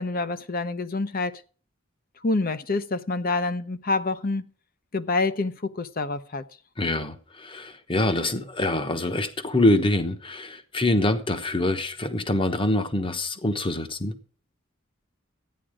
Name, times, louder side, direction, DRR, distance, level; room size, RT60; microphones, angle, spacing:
voice 1, 0.0-1.4 2.2-4.5 4.9-6.4, left 3 dB, 45° left, 0.8 m, -27 dB
voice 2, 6.8-14.1, left 1 dB, 25° left, 1.1 m, -25 dB
13.5 x 9.9 x 5.0 m
head